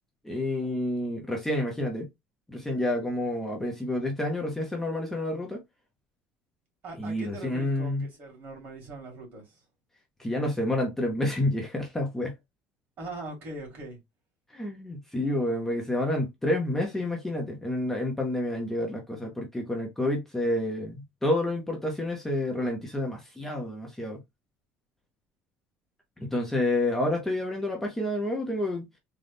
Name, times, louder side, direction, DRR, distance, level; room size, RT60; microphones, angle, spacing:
voice 1, 0.2-2.1 2.5-5.6 7.0-8.1 10.2-12.3 14.5-24.2 26.2-28.9, left 1 dB, 5° left, 0.8 m, -29 dB
voice 2, 6.8-9.6 13.0-14.0, right 2 dB, 45° right, 2.4 m, -41 dB
3.9 x 2.3 x 3.4 m
cardioid pair, 160°, 5 cm